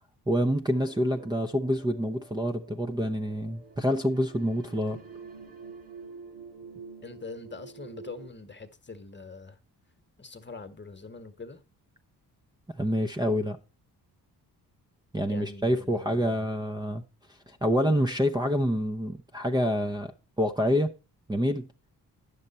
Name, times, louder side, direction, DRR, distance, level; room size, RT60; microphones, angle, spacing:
voice 1, 0.3-5.0 12.7-13.6 15.1-17.0 17.5-20.1 20.4-20.9 21.3-21.7, equal, 10° right, 0.8 m, -27 dB
sound 1, 0.7-8.3, right 5 dB, 80° right, 1.6 m, -48 dB
voice 2, 7.0-9.6 10.2-11.6 15.3-16.5, left 3 dB, 25° left, 1.4 m, -43 dB
9.6 x 6.9 x 4.2 m
supercardioid pair, 50°, 41 cm